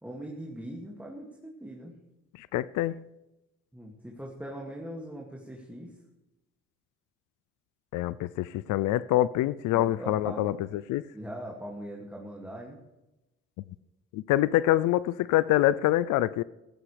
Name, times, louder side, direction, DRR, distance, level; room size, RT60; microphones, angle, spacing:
voice 1, 0.0-1.9 3.7-5.9 9.7-10.5 11.1-12.8, right 1 dB, 5° right, 2.3 m, -41 dB
voice 2, 2.4-2.9 7.9-11.0 14.1-16.4, left 14 dB, 90° left, 0.4 m, -25 dB
17.0 x 14.5 x 3.4 m
cardioid pair, 90°, 30 cm